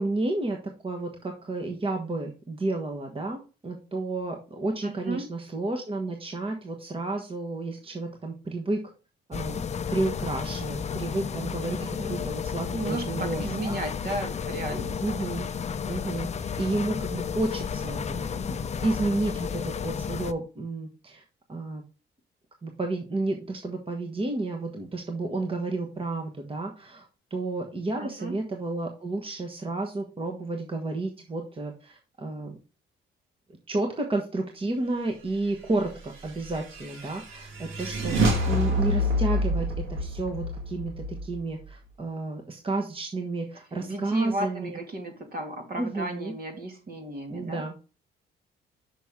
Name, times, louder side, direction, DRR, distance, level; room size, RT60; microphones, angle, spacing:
voice 1, 0.0-8.8 9.3-9.6 9.9-13.8 15.0-15.5 15.9-18.6 18.8-21.2 21.5-21.8 22.6-32.6 33.7-44.8 45.8-46.3 47.3-47.7, right 2 dB, 25° right, 2 dB, 1.2 m, -31 dB
voice 2, 4.8-5.3 11.8-12.3 12.7-15.0 28.0-28.4 43.7-47.6, right 2 dB, 50° right, 4 dB, 2.2 m, -34 dB
sound 1, 9.3-20.3, left 6 dB, 35° left, 0.5 m, -32 dB
sound 2, 36.1-41.7, equal, 85° right, 1.9 m, -28 dB
6.1 x 5.9 x 3.6 m, 0.33 s
cardioid pair, 90°, 20 cm